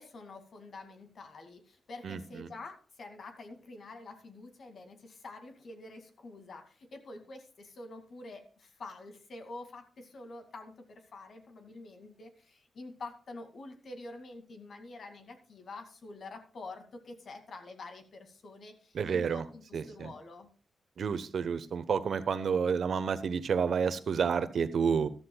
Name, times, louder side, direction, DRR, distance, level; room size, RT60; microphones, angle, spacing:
voice 1, 0.0-20.5, left 2 dB, 65° left, 6 dB, 2.3 m, -47 dB
voice 2, 2.0-2.5 18.9-19.5 19.7-20.1 21.0-25.1, right 6 dB, 70° right, 12 dB, 1.0 m, -30 dB
13.5 x 12.5 x 2.3 m, 0.39 s
cardioid pair, 65°, 0 cm